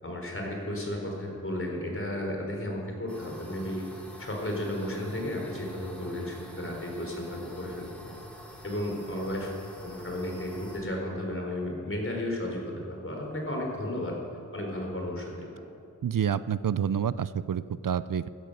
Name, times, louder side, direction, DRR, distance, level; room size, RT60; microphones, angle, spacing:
voice 1, 0.0-3.9 4.2-7.9 8.6-9.5 9.8-14.2 14.5-15.6, left 1 dB, 40° left, 0 dB, 4.2 m, -33 dB
sound 1, 3.1-10.8, left 1 dB, 5° left, 2.8 m, -46 dB
voice 2, 16.0-18.3, right 8 dB, 75° right, 16 dB, 0.5 m, -28 dB
15.5 x 13.5 x 6.8 m, 2.4 s
wide cardioid pair, 55°, 33 cm